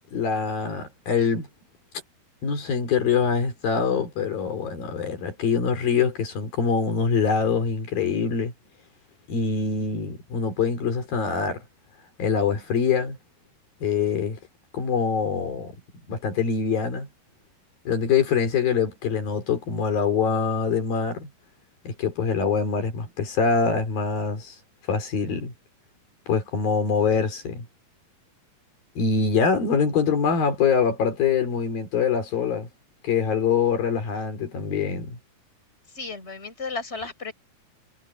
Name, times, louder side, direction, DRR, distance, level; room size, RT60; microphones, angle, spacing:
voice 1, 0.1-1.5 2.4-8.5 9.3-11.6 12.2-13.2 13.8-14.4 14.7-15.7 16.1-17.1 17.9-21.3 21.9-24.6 24.9-25.5 26.3-27.7 29.0-32.7 33.0-35.2, left 6 dB, 70° left, 5.4 m, -24 dB
voice 2, 35.9-37.3, left 4 dB, 15° left, 5.9 m, -34 dB
omnidirectional pair, 4.3 m